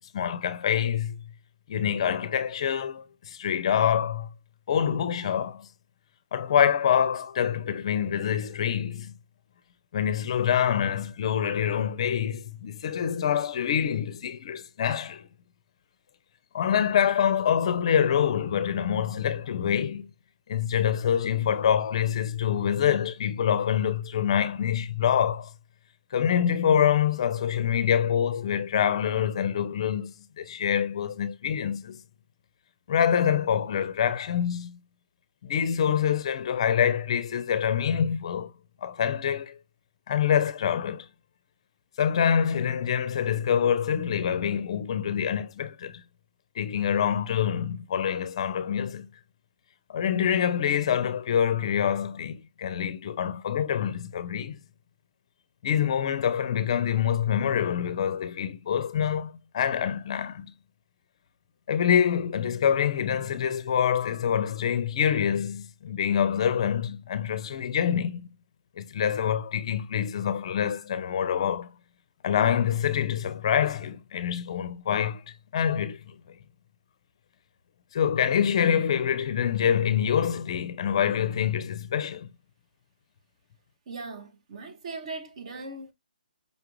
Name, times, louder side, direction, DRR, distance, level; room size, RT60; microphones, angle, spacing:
voice 1, 0.1-1.2 1.7-4.3 4.7-5.7 6.3-9.2 9.9-15.3 16.5-20.1 20.5-25.5 26.1-32.0 32.9-34.8 35.4-38.5 38.8-39.6 40.1-41.1 42.0-46.0 46.6-49.1 49.9-54.6 55.6-60.5 61.7-68.3 68.8-71.7 72.2-75.2 75.5-76.4 77.9-82.3, left 8 dB, 35° left, 0.5 m, -26 dB
voice 2, 83.9-85.9, right 3 dB, 40° right, 0.7 m, -39 dB
5.4 x 2.4 x 3.0 m
hypercardioid pair, 165°, 5 cm